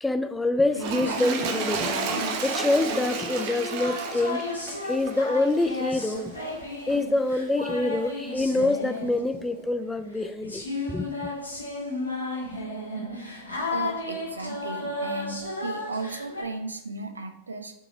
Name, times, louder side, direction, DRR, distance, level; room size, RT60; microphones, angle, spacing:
voice 1, 0.0-1.9 2.4-4.5 4.8-6.3 6.9-11.3, left 2 dB, 10° left, 0.5 m, -26 dB
sound 1, 0.7-16.4, left 2 dB, 85° left, 1.9 m, -34 dB
Toilet flush, 0.7-6.2 6.9-7.0, right 4 dB, 45° right, 1.0 m, -32 dB
voice 2, 13.7-17.7, right 3 dB, 75° right, 0.8 m, -35 dB
6.1 x 4.7 x 4.8 m
figure-of-eight pair, 90°, 0 cm